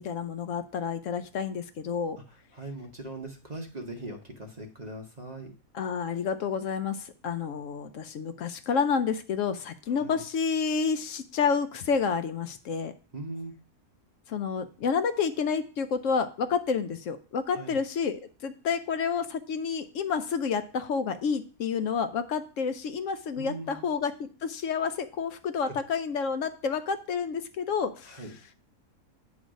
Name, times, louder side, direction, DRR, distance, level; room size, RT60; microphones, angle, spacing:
voice 1, 0.0-2.2 5.7-12.9 14.3-28.2, left 6 dB, 70° left, 9 dB, 0.9 m, -29 dB
voice 2, 2.3-5.5 9.9-10.2 13.1-13.5 17.5-17.8 23.3-23.8 25.6-25.8 28.0-28.4, right 2 dB, 35° right, 2 dB, 0.8 m, -40 dB
9.0 x 3.1 x 6.2 m, 0.39 s
omnidirectional pair, 1.5 m